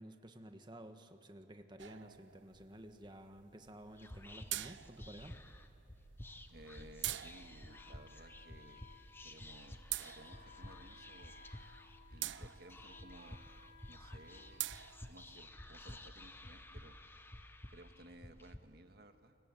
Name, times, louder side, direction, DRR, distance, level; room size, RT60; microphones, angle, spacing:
voice 1, 0.0-5.3, right 1 dB, 25° right, 7 dB, 1.4 m, -53 dB
sound 1, 1.8-15.4, right 14 dB, 80° right, 0.5 m, -48 dB
Whispering, 3.9-18.6, left 1 dB, 10° left, 0.9 m, -53 dB
voice 2, 6.5-8.8 9.2-11.3 12.1-13.4 13.9-14.7 15.1-17.0 17.7-19.4, right 1 dB, 55° right, 7 dB, 1.6 m, -58 dB
Wind instrument woodwind instrument, 7.7-15.4, left 4 dB, 40° left, 4.4 m, -61 dB
28.5 x 23.0 x 9.1 m, 2.8 s
head